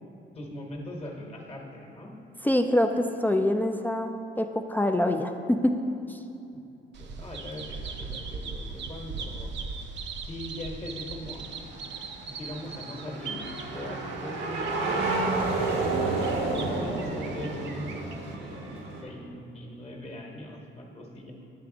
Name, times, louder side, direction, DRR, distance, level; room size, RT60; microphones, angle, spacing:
voice 1, 0.3-2.1 7.0-9.5 10.2-11.5 12.2-13.4 13.7-15.0 16.2-18.0 19.0-21.3, left 1 dB, 30° left, 0 dB, 1.1 m, -40 dB
voice 2, 2.4-4.1 4.4-5.7 6.1-6.2, left 1 dB, 10° left, 5 dB, 0.3 m, -25 dB
Bird vocalization bird call bird song, 6.9-18.3, right 4 dB, 65° right, 0.6 m, -40 dB
sound 1, 11.2-19.0, right 3 dB, 90° right, 1.1 m, -31 dB
9.5 x 3.4 x 4.9 m, 2.8 s
cardioid pair, 90°, 20 cm